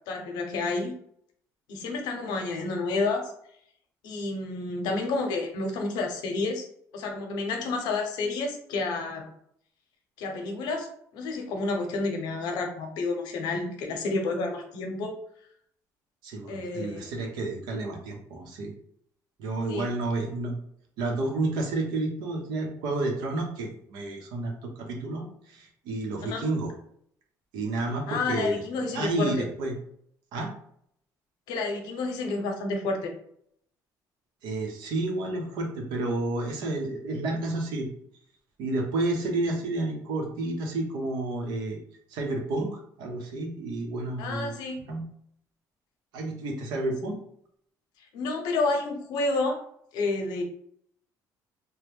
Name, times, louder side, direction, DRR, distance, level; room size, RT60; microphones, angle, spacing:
voice 1, 0.1-0.9 1.7-3.3 4.0-6.7 6.9-9.3 10.2-15.2 16.5-17.1 19.7-19.9 26.2-26.5 28.1-29.4 31.5-33.1 44.2-44.8 48.1-49.6 49.9-50.4, left 3 dB, 80° left, 3 dB, 0.7 m, -30 dB
voice 2, 16.2-18.7 19.4-20.6 21.0-26.7 27.5-28.6 28.9-29.7 30.3-30.5 34.4-37.9 38.6-41.8 42.1-44.5 44.9-45.1 46.1-47.2, right 2 dB, 85° right, 1 dB, 0.9 m, -30 dB
3.0 x 2.2 x 3.4 m, 0.67 s
cardioid pair, 165°, 7 cm